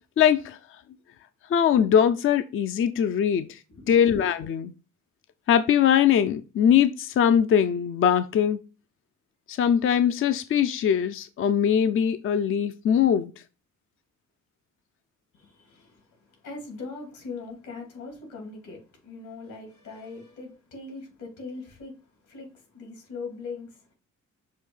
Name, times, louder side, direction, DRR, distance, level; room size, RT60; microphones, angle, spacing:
voice 1, 0.2-0.6 1.5-3.6 3.9-4.7 5.5-8.6 9.5-13.3, left 8 dB, 45° left, 0.5 m, -21 dB
voice 2, 15.3-23.9, left 4 dB, 80° left, 2.8 m, -41 dB
6.4 x 2.7 x 5.4 m
cardioid pair, 90°, 30 cm